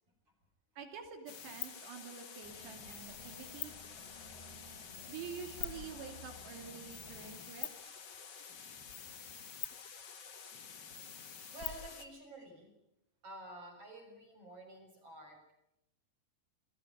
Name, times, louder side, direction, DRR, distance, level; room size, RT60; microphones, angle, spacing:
voice 1, 0.8-3.7 5.1-8.0, right 7 dB, 75° right, 5 dB, 4.8 m, -48 dB
sound 1, 1.3-12.1, left 7 dB, 75° left, 1.0 m, -47 dB
sound 2, 2.4-7.5, left 2 dB, 50° left, 7.4 m, -56 dB
voice 2, 11.5-12.7 13.2-15.5, right 1 dB, 30° right, 3 dB, 7.5 m, -50 dB
29.0 x 20.5 x 9.2 m, 0.85 s
omnidirectional pair, 5.0 m